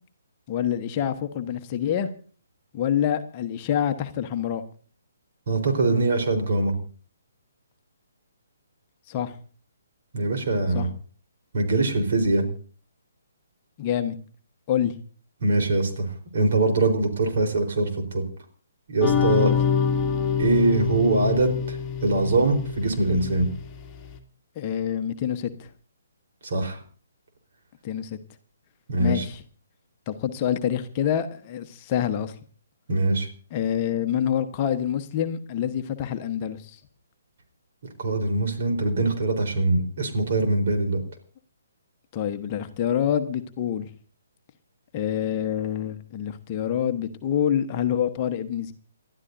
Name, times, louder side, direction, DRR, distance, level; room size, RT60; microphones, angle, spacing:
voice 1, 0.5-2.1 2.7-4.6 9.1-9.4 10.7-10.9 13.8-14.2 14.7-15.0 19.3-19.6 24.5-25.7 27.8-28.2 29.0-29.4 30.1-32.3 33.5-36.8 42.1-43.9 44.9-48.7, left 9 dB, 30° left, 7 dB, 1.2 m, -26 dB
voice 2, 5.5-6.7 10.1-10.9 11.5-12.5 15.4-16.1 16.3-18.2 18.9-19.5 20.4-21.8 22.0-23.5 26.4-26.8 28.9-29.2 32.9-33.3 38.0-41.0, right 2 dB, 50° right, 4 dB, 4.1 m, -23 dB
sound 1, 19.0-23.8, left 7 dB, 15° left, 2.2 m, -25 dB
29.0 x 12.5 x 2.7 m, 0.43 s
figure-of-eight pair, 135°, 0 cm